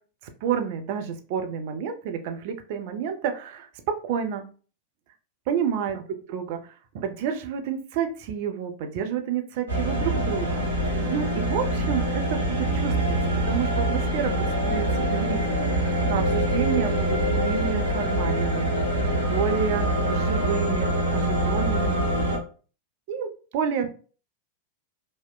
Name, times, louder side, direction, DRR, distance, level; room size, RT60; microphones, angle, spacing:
voice 1, 0.4-4.5 5.5-6.0 6.3-13.2 13.5-14.3 14.6-18.7 19.2-22.0 23.1-24.0, right 7 dB, 50° right, 6 dB, 0.4 m, -30 dB
sound 1, 9.7-22.4, right 1 dB, 75° right, 0.9 m, -25 dB
2.8 x 2.0 x 2.2 m, 0.37 s
figure-of-eight pair, 90°, 0 cm